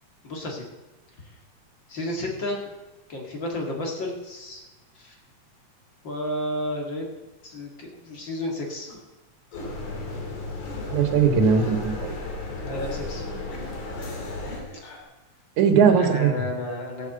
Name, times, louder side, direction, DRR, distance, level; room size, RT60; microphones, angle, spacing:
voice 1, 0.2-0.7 1.2-1.3 1.9-2.7 3.1-4.7 4.9-5.2 6.0-7.1 7.4-8.9 12.6-13.2 15.8-17.1, left 1 dB, 40° left, 0 dB, 2.5 m, -32 dB
sound 1, 8.9-9.0 9.5-9.8 10.6-10.9 11.6-11.8 12.7-13.1 13.5-15.0, left 1 dB, 90° left, 4.2 m, -43 dB
sound 2, 9.5-14.6, left 2 dB, 60° left, 3.4 m, -34 dB
voice 2, 10.8-12.1 15.6-16.3, right 6 dB, 75° right, 6 dB, 2.9 m, -19 dB
15.5 x 8.3 x 7.7 m, 1.1 s
omnidirectional pair, 3.4 m